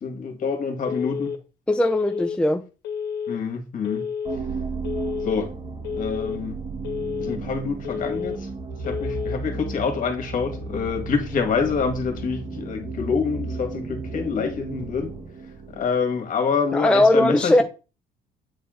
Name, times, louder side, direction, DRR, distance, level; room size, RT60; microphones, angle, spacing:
voice 1, 0.0-1.4 3.3-4.1 5.2-5.5 6.0-6.6 7.2-8.5 8.8-15.1 15.7-17.6, left 5 dB, 50° left, 2.0 m, -26 dB
Telephone, 0.8-1.4 1.8-2.4 2.8-3.4 3.8-4.4 4.8-5.4 5.8-6.4 6.8-7.4 7.8-8.4 8.8-9.4, left 7 dB, 85° left, 1.5 m, -30 dB
voice 2, 1.7-2.6 16.7-17.6, left 1 dB, 5° left, 0.4 m, -19 dB
sound 1, 4.2-16.1, right 4 dB, 30° right, 1.6 m, -34 dB
8.8 x 3.8 x 3.8 m
cardioid pair, 110°, 17 cm